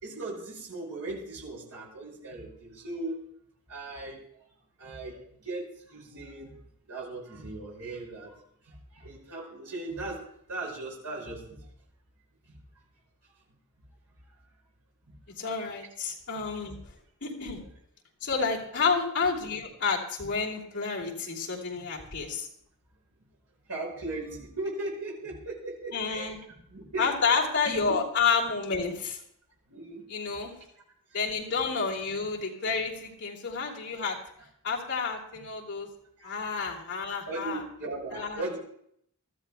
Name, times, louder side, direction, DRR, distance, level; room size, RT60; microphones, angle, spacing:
voice 1, 0.0-3.1 3.7-4.2 4.8-5.2 5.4-6.5 6.9-8.3 9.0-10.2 10.5-11.4 23.7-26.3 26.7-27.9 29.7-30.0 36.2-36.3 37.3-38.6, right 2 dB, 80° right, -3 dB, 6.1 m, -37 dB
voice 2, 15.4-16.8 17.2-17.6 18.2-22.5 25.9-26.4 27.0-29.2 30.1-30.5 31.1-34.2 34.6-35.9 36.2-37.6 38.1-38.6, left 5 dB, 55° left, -4 dB, 2.8 m, -30 dB
24.5 x 13.5 x 2.3 m, 0.68 s
head